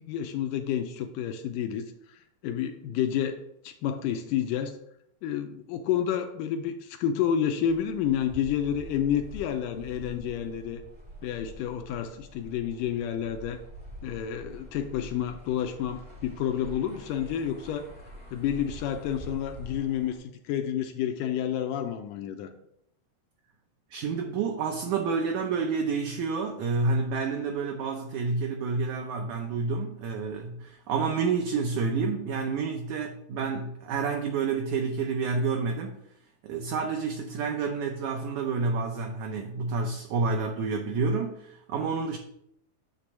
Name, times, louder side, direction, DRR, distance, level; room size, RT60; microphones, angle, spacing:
voice 1, 0.0-4.8 5.2-10.8 11.2-13.6 14.0-17.9 18.3-22.5, left 9 dB, 80° left, 7 dB, 1.9 m, -30 dB
sound 1, 7.6-20.1, equal, 35° right, 0.7 m, -46 dB
voice 2, 23.9-36.0 36.4-42.2, right 4 dB, 80° right, 2 dB, 1.7 m, -29 dB
9.8 x 3.3 x 6.0 m, 0.75 s
omnidirectional pair, 4.1 m